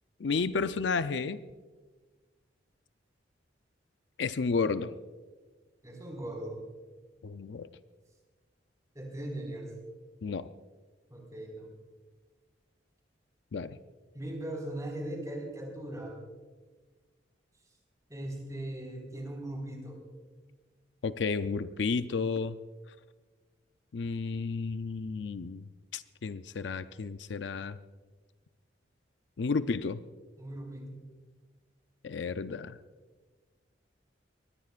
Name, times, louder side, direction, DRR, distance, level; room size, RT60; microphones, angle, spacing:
voice 1, 0.2-1.4 4.2-4.9 7.2-7.7 10.2-10.5 13.5-13.8 21.0-22.6 23.9-27.8 29.4-30.0 32.0-32.8, left 4 dB, 65° left, 12 dB, 0.5 m, -32 dB
voice 2, 5.8-6.6 8.9-9.7 11.1-11.7 14.1-16.2 18.1-20.0 30.4-31.0, right 1 dB, 20° right, 0 dB, 4.7 m, -39 dB
23.5 x 19.5 x 2.5 m, 1.4 s
head